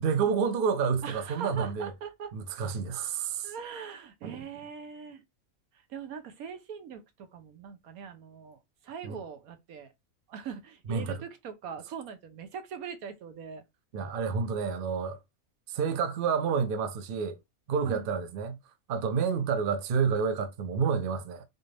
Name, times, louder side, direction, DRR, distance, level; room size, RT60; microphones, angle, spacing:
voice 1, 0.0-1.9 2.3-3.5 9.0-9.2 10.9-11.2 13.9-15.2 15.7-17.4 17.7-18.6 18.9-21.4, right 6 dB, 55° right, 0.6 m, -29 dB
voice 2, 1.0-2.3 3.4-5.2 5.9-9.9 10.3-13.6 17.9-18.1, right 7 dB, 80° right, 1.2 m, -41 dB
4.1 x 2.5 x 3.3 m
omnidirectional pair, 1.5 m